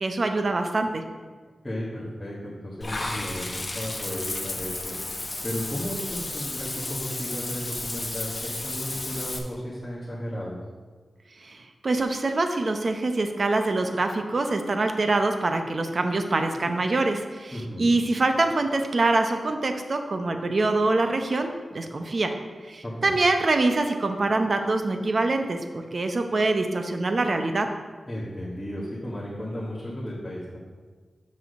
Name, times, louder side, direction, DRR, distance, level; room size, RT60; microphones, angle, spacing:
voice 1, 0.0-1.0 11.4-22.4 22.6-27.7, right 2 dB, 45° right, 6 dB, 0.7 m, -25 dB
voice 2, 1.6-4.9 5.4-10.6 17.5-17.9 22.8-23.1 28.1-30.6, equal, 5° left, -9 dB, 1.4 m, -34 dB
Water / Bathtub (filling or washing), 2.8-9.4, left 2 dB, 30° left, 0.8 m, -33 dB
6.5 x 6.0 x 5.2 m, 1.5 s
wide cardioid pair, 120°, 0 cm